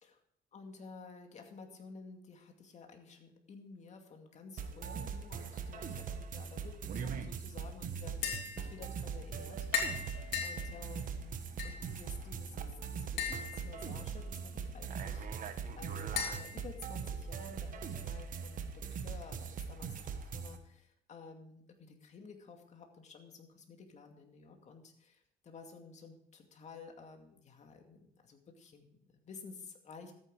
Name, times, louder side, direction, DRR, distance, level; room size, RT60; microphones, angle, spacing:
voice 1, 0.5-10.1 10.4-30.1, left 4 dB, 45° left, 4 dB, 2.4 m, -53 dB
sound 1, 4.6-20.6, right 6 dB, 50° right, 1.4 m, -41 dB
Tap, 8.1-17.5, left 7 dB, 75° left, 3.2 m, -42 dB
13.5 x 9.3 x 4.9 m, 0.74 s
cardioid pair, 110°, 17 cm